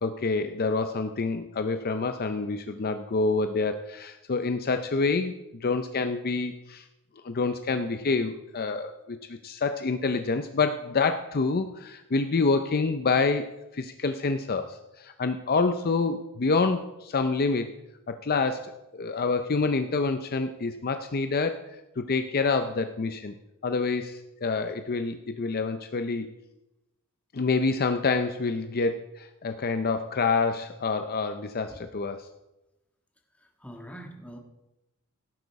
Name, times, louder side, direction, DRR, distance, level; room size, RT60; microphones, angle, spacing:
voice 1, 0.0-5.3 5.6-6.8 7.2-9.2 9.4-13.5 13.7-17.7 18.1-21.6 22.0-23.3 23.6-26.3 27.3-32.3, left 4 dB, 45° left, 8 dB, 0.5 m, -27 dB
voice 2, 33.6-34.4, equal, 5° left, 2 dB, 1.6 m, -43 dB
16.5 x 8.1 x 4.7 m, 0.96 s
head